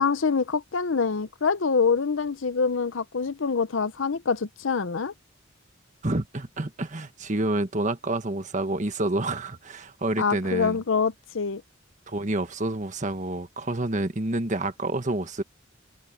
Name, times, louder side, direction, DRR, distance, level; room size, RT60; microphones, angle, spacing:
voice 1, 0.0-5.1 10.2-11.6, left 5 dB, 80° left, 0.7 m, -25 dB
voice 2, 6.0-10.8 12.1-15.4, right 2 dB, 40° right, 1.5 m, -28 dB
head